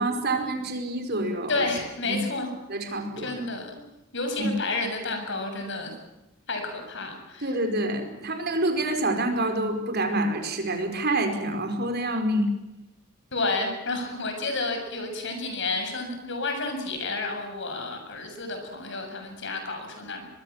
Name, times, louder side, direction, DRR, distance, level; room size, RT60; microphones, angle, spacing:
voice 1, 0.0-1.6 2.0-2.2 2.7-3.4 4.4-4.5 7.4-12.5, right 1 dB, 50° right, 5 dB, 4.8 m, -27 dB
voice 2, 1.5-2.5 3.2-3.8 4.1-5.9 6.5-7.5 13.3-20.3, left 3 dB, 60° left, 5 dB, 7.1 m, -30 dB
24.0 x 22.0 x 7.4 m, 0.96 s
head